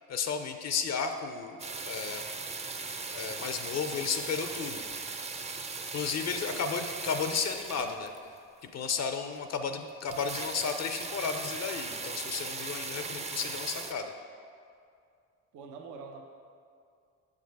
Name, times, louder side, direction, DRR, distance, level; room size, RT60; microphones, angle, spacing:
voice 1, 0.0-2.3 3.1-4.8 5.9-8.1 8.6-14.1, left 6 dB, 60° left, 7 dB, 0.5 m, -33 dB
sound 1, 1.6-8.4 9.0-9.1 9.3-9.4 9.6-9.7 9.9-13.9, right 4 dB, 20° right, 0.4 m, -38 dB
voice 2, 15.5-16.2, right 4 dB, 80° right, 3 dB, 0.7 m, -45 dB
6.6 x 4.9 x 4.6 m, 2.3 s
cardioid pair, 90°, 30 cm